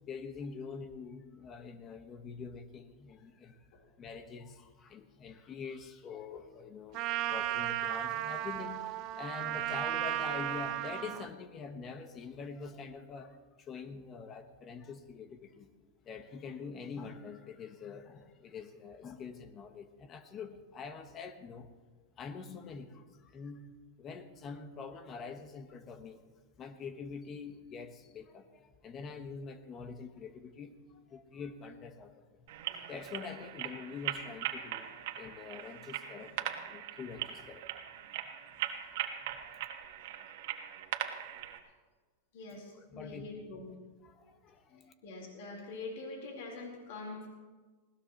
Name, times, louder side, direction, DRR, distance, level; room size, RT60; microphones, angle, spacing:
voice 1, 0.1-15.7 16.0-21.7 22.2-26.2 26.6-32.2 32.7-34.9 35.2-37.8 38.1-38.2 38.8-39.0 42.8-43.3 44.0-44.9, left 5 dB, 35° left, 9 dB, 1.3 m, -45 dB
Trumpet, 6.9-11.3, right 14 dB, 50° right, 1.0 m, -35 dB
sound 1, 32.5-41.6, right 11 dB, 70° right, 1.5 m, -40 dB
voice 2, 42.3-43.7 45.0-47.3, left 3 dB, 70° left, 0 dB, 4.2 m, -44 dB
20.0 x 17.5 x 3.1 m, 1.4 s
hypercardioid pair, 110°, 0 cm